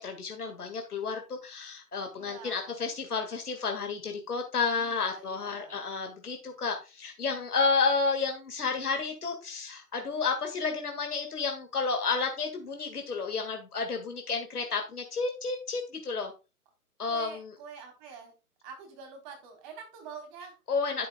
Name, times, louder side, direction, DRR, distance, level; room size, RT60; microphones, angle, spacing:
voice 1, 0.0-16.3 17.0-17.5 20.7-21.1, left 4 dB, 75° left, 4 dB, 1.9 m, -31 dB
voice 2, 2.1-2.7 4.8-5.8 17.1-18.3 18.6-20.5, right 6 dB, 30° right, 3 dB, 3.7 m, -46 dB
11.0 x 7.9 x 2.3 m, 0.29 s
figure-of-eight pair, 130°, 46 cm